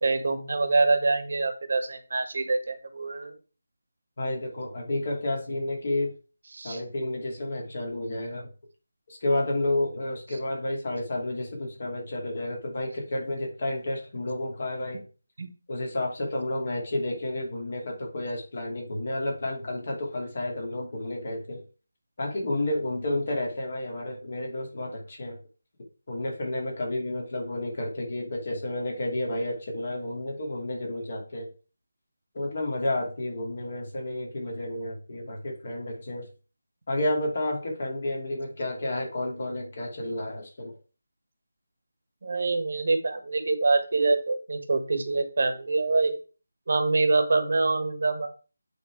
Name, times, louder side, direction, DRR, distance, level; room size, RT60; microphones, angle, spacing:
voice 1, 0.0-3.3 6.5-6.8 15.4-15.5 42.2-46.1 46.7-48.3, right 3 dB, 55° right, 8 dB, 1.3 m, -25 dB
voice 2, 4.2-6.1 6.6-8.5 9.1-15.0 15.7-21.6 22.2-25.4 26.1-31.5 32.3-36.3 36.9-40.7, left 1 dB, 45° left, 0 dB, 2.7 m, -31 dB
8.2 x 3.9 x 4.7 m, 0.36 s
figure-of-eight pair, 170°, 0 cm